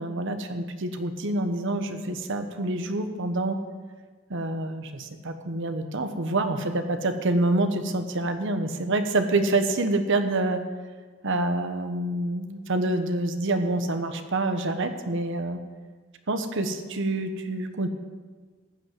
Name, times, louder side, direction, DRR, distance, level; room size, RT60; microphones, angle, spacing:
voice 1, 0.0-3.6 4.3-10.6 11.2-15.6 16.3-17.9, right 2 dB, 65° right, 8 dB, 1.1 m, -27 dB
15.0 x 5.5 x 9.3 m, 1.5 s
head